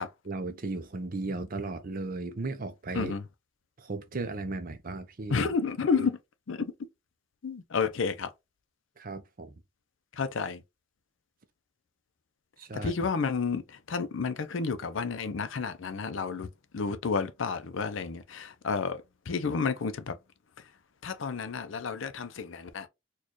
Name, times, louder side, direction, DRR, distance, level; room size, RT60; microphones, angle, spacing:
voice 1, 0.2-3.1 3.8-5.4 5.9-6.1 9.0-9.6 12.6-12.9, right 3 dB, 45° right, 0.6 m, -36 dB
voice 2, 5.3-6.2 6.5-6.7 7.4-8.3 10.1-10.6 12.7-16.5 16.7-20.2 20.6-20.7 21.0-22.9, left 5 dB, 70° left, 0.5 m, -31 dB
4.2 x 2.4 x 3.0 m
head